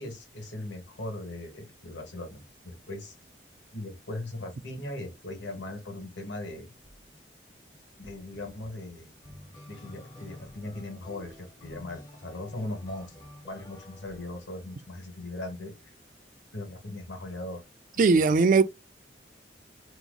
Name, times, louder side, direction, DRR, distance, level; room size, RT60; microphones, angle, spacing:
voice 1, 0.0-3.1 3.7-6.7 8.0-9.1 9.7-15.9 16.5-17.6 18.0-18.4, left 2 dB, 80° left, 1.4 m, -39 dB
sound 1, 6.8-7.2 7.7-14.9, left 1 dB, 20° left, 0.9 m, -50 dB
voice 2, 18.0-18.6, right 4 dB, 45° right, 0.3 m, -19 dB
3.8 x 2.9 x 2.3 m
head